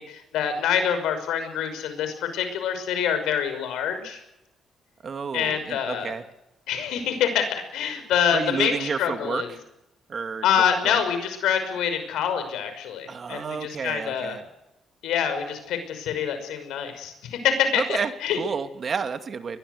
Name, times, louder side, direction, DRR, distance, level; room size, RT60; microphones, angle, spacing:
voice 1, 0.0-4.2 5.3-6.1 6.7-9.5 10.4-14.4 15.0-18.4, left 8 dB, 85° left, 9 dB, 5.8 m, -26 dB
voice 2, 5.0-6.2 8.3-9.6 10.1-10.4 10.8-11.0 13.1-14.4 17.7-19.6, right 5 dB, 45° right, 8 dB, 2.4 m, -30 dB
23.0 x 21.0 x 8.1 m, 0.89 s
cardioid pair, 90°, 0 cm